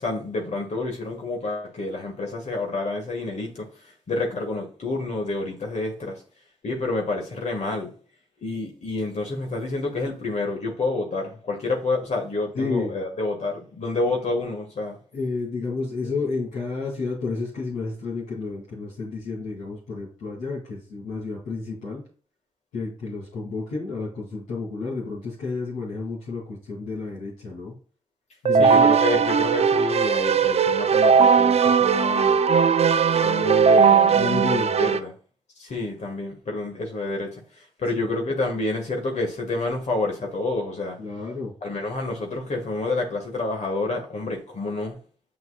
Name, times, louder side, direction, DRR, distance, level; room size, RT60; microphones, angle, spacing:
voice 1, 0.0-6.2 6.6-7.9 8.4-15.0 28.6-32.4 33.2-35.1 35.6-41.0 41.6-45.0, left 2 dB, 55° left, 1.8 m, -29 dB
voice 2, 12.5-12.9 15.1-22.0 22.7-27.7 28.4-29.2 34.1-34.7 38.0-38.1 41.0-41.5, left 4 dB, 85° left, 2.9 m, -31 dB
Keyboard (musical), 28.4-35.0, right 6 dB, 50° right, 0.5 m, -18 dB
7.6 x 5.8 x 2.4 m
supercardioid pair, 45°, 14 cm